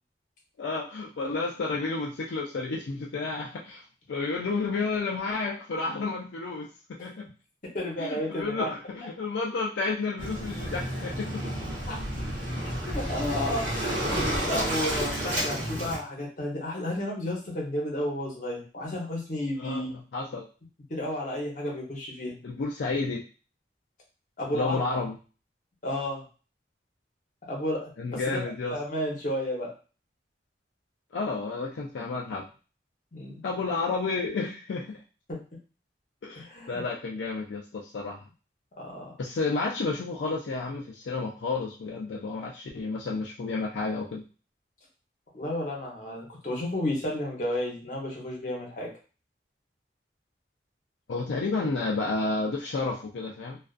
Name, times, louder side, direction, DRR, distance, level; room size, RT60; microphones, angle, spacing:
voice 1, 0.6-3.8 4.1-7.3 8.0-11.4 15.4-15.5 19.6-20.4 22.4-23.2 24.5-25.2 28.0-28.8 31.1-32.4 33.4-35.0 36.2-38.2 39.2-44.2 51.1-53.6, left 3 dB, 75° left, -2 dB, 0.4 m, -31 dB
voice 2, 7.7-8.7 11.9-12.0 12.9-13.7 14.5-19.9 20.9-22.4 24.4-24.8 25.8-26.2 27.5-28.4 28.7-29.7 33.1-33.4 35.3-35.4 36.4-36.8 38.8-39.1 45.3-48.9, left 1 dB, 45° left, -2 dB, 0.8 m, -32 dB
Waves surf, 10.2-16.0, right 1 dB, 45° right, 0.9 m, -30 dB
2.4 x 2.3 x 2.3 m, 0.35 s
head